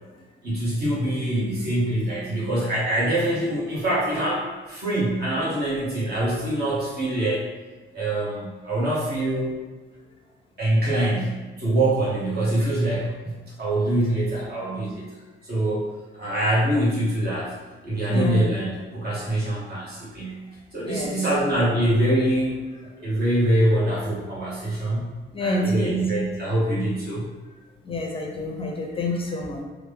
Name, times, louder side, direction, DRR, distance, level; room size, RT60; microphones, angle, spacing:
voice 1, 0.4-7.4 7.9-9.6 10.6-15.0 15.4-17.5 17.8-20.4 20.7-25.1 25.4-27.2, right 1 dB, 50° right, -7 dB, 1.5 m, -24 dB
voice 2, 18.1-18.5 20.8-21.2 25.3-26.0 27.8-29.6, left 1 dB, 30° left, 0 dB, 0.5 m, -27 dB
3.2 x 2.4 x 3.5 m, 1.3 s
cardioid pair, 90°, 20 cm